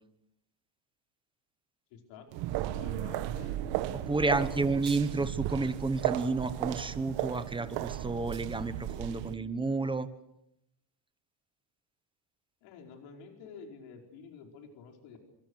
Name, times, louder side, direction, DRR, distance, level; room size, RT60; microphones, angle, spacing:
voice 1, 1.9-2.3 2.5-3.6 4.2-4.8 12.6-15.2, left 6 dB, 80° left, 3 dB, 5.1 m, -50 dB
sound 1, 2.3-9.3, right 13 dB, 70° right, 1.6 m, -35 dB
voice 2, 3.9-10.1, right 3 dB, 10° right, 11 dB, 1.2 m, -31 dB
28.0 x 26.5 x 6.5 m, 0.79 s
cardioid pair, 170°, 45 cm